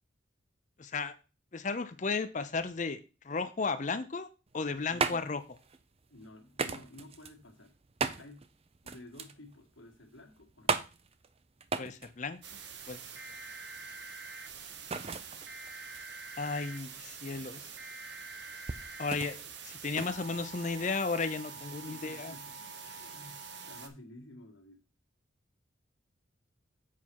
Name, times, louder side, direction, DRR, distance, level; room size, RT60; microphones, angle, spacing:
voice 1, 0.8-1.1 1.5-3.0 3.2-4.3 4.5-5.4 11.8-12.4 12.9-13.0 16.4-17.7 19.0-19.4 19.6-22.3 22.9-23.0, left 4 dB, 40° left, 0.6 m, -34 dB
sound 1, 4.5-21.0, right 4 dB, 30° right, 0.5 m, -39 dB
voice 2, 4.9-5.2 6.1-7.7 8.2-8.5 8.8-10.8 21.5-22.6 23.0-24.8, left 1 dB, 80° left, 1.7 m, -52 dB
sound 2, 12.4-23.9, right 5 dB, 60° right, 1.1 m, -45 dB
7.6 x 5.6 x 4.6 m
head